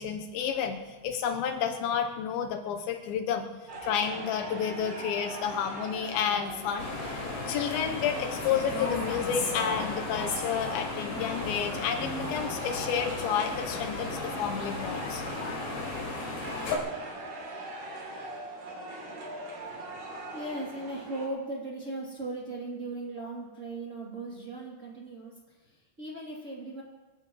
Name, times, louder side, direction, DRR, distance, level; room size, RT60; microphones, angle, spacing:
voice 1, 0.0-3.6 3.8-7.2 7.5-16.1, left 8 dB, 90° left, 4 dB, 2.1 m, -31 dB
sound 1, 3.7-21.3, right 2 dB, 45° right, 4.1 m, -41 dB
sound 2, 6.8-16.8, left 3 dB, 60° left, 5.0 m, -35 dB
voice 2, 19.7-20.0 20.3-26.8, right 2 dB, 20° right, -5 dB, 2.1 m, -38 dB
25.0 x 16.5 x 3.1 m, 1.3 s
omnidirectional pair, 5.5 m